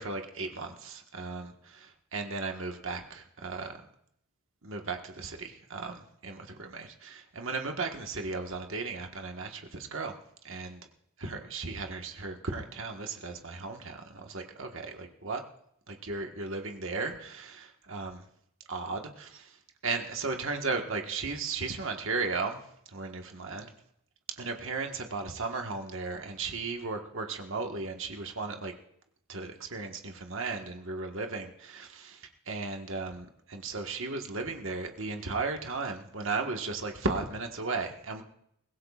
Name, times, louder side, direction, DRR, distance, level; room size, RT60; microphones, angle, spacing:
voice 1, 0.0-3.8 4.6-10.1 10.4-10.8 11.2-15.4 15.9-18.3 18.7-19.6 19.8-23.7 24.4-28.7 29.3-38.2, right 3 dB, 60° right, 3 dB, 1.5 m, -36 dB
23.5 x 16.5 x 2.5 m, 0.72 s
head